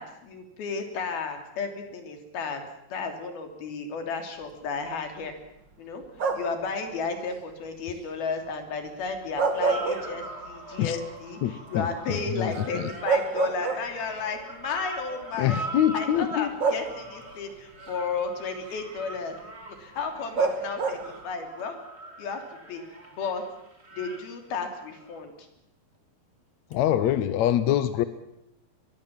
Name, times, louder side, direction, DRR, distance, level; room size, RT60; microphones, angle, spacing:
voice 1, 0.0-2.6 2.9-5.3 5.8-6.0 6.3-15.6 15.9-19.4 19.8-21.0 21.2-21.8 22.2-22.4 22.7-22.8 23.2-23.4 23.9-25.3, left 4 dB, 85° left, 6 dB, 5.0 m, -33 dB
sound 1, 6.2-6.7 9.2-10.6 11.0-11.1 12.6-12.7 13.1-14.2 15.2-15.3 16.6-17.3 20.4-21.2, right 4 dB, 40° right, 1.9 m, -27 dB
Gramophone speed mess-up, 9.6-25.2 26.7-26.8, right 2 dB, 15° right, 3.5 m, -42 dB
voice 2, 11.4-12.9 15.4-16.5 26.7-28.0, left 11 dB, 70° left, 13 dB, 1.8 m, -25 dB
23.0 x 22.0 x 7.5 m, 0.81 s
omnidirectional pair, 4.3 m